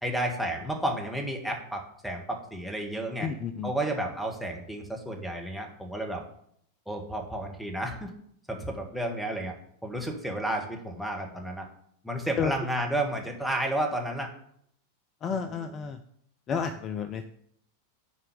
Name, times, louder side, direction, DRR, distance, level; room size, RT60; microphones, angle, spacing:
voice 1, 0.0-3.3 3.6-6.2 6.9-8.1 8.5-9.5 9.8-11.7 12.0-14.3 15.3-15.5, right 1 dB, ahead, 3 dB, 1.6 m, -32 dB
voice 2, 3.2-3.7 12.4-12.5 15.2-16.0 16.5-17.2, left 6 dB, 30° left, 9 dB, 0.5 m, -31 dB
7.1 x 4.5 x 6.9 m, 0.68 s
figure-of-eight pair, 90°, 0 cm